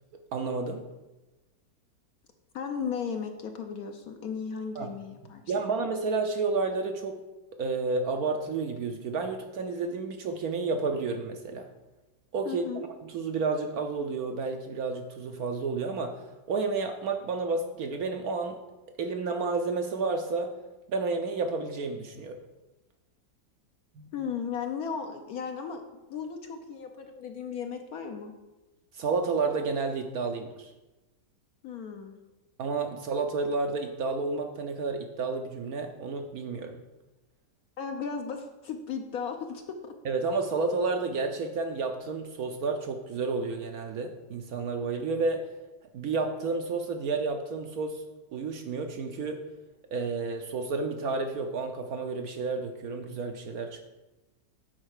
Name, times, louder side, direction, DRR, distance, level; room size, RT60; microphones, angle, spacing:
voice 1, 0.3-0.9 4.7-5.0 5.5-7.2 7.5-11.7 12.3-16.2 16.5-18.6 19.0-20.5 20.9-22.4 24.0-24.1 28.9-30.7 32.6-36.8 40.0-45.5 45.9-48.0 48.3-49.4 49.9-53.8, right 4 dB, 65° right, 5 dB, 1.0 m, -31 dB
voice 2, 2.5-5.5 12.4-12.9 24.1-25.8 26.1-28.3 31.6-32.2 37.8-39.9, left 6 dB, 65° left, 5 dB, 1.0 m, -35 dB
8.8 x 4.7 x 6.4 m, 1.1 s
omnidirectional pair, 2.0 m